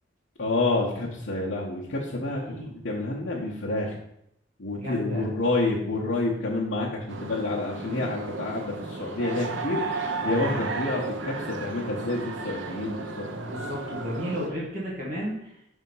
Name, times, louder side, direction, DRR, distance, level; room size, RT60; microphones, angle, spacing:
voice 1, 0.4-3.9 4.6-9.9 10.2-13.3, left 2 dB, 70° left, -7 dB, 1.0 m, -28 dB
voice 2, 4.8-5.2 10.2-10.6 13.3-15.5, equal, 40° right, -7 dB, 1.6 m, -33 dB
sound 1, 7.1-14.5, right 3 dB, 75° right, 0.7 m, -34 dB
5.4 x 3.6 x 5.5 m, 0.78 s
head